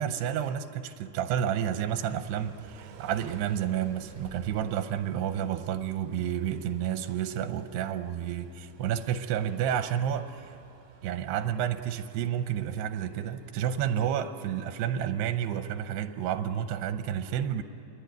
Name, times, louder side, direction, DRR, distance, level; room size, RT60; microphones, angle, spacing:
voice 1, 0.0-10.5 11.0-17.6, right 9 dB, 90° right, 9 dB, 3.0 m, -30 dB
sound 1, 1.3-12.6 13.4-13.5 14.5-14.6 14.8-14.9, right 2 dB, 40° right, 8.0 m, -57 dB
Car / Idling / Accelerating revving vroom, 1.9-14.2, right 8 dB, 70° right, 3.2 m, -54 dB
28.0 x 22.5 x 9.3 m, 2.9 s
omnidirectional pair, 4.7 m